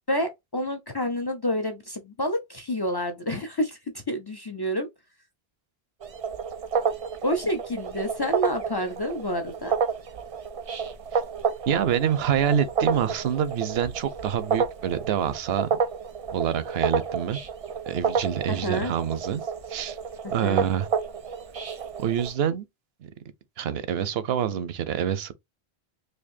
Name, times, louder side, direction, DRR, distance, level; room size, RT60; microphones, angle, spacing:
voice 1, 0.1-3.8 4.1-4.9 7.2-9.7 18.5-18.9 20.2-20.7, equal, 40° left, 0.3 m, -28 dB
sound 1, 6.0-22.3, right 6 dB, 45° right, 0.5 m, -30 dB
voice 2, 11.7-15.8 16.3-17.4 17.9-19.4 19.7-20.0 20.3-20.9 22.0-22.7 23.6-25.3, right 9 dB, 80° right, 0.8 m, -26 dB
4.3 x 2.6 x 2.6 m
omnidirectional pair, 1.0 m